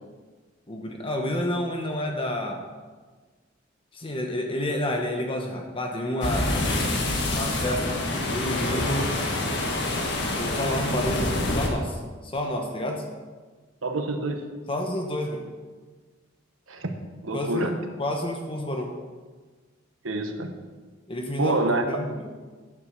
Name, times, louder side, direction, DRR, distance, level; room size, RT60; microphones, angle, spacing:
voice 1, 0.7-2.6 3.9-6.5 7.3-9.2 10.4-13.0 14.7-15.4 17.3-17.7 18.0-18.9 21.1-21.6 21.9-22.3, left 1 dB, 25° left, 2 dB, 1.0 m, -29 dB
sound 1, 6.2-11.7, left 2 dB, 60° left, 1.7 m, -26 dB
voice 2, 13.8-14.5 16.7-16.9 17.2-17.7 20.0-20.5 21.4-21.8, right 2 dB, 80° right, 5 dB, 1.2 m, -26 dB
9.5 x 7.2 x 6.6 m, 1.4 s
head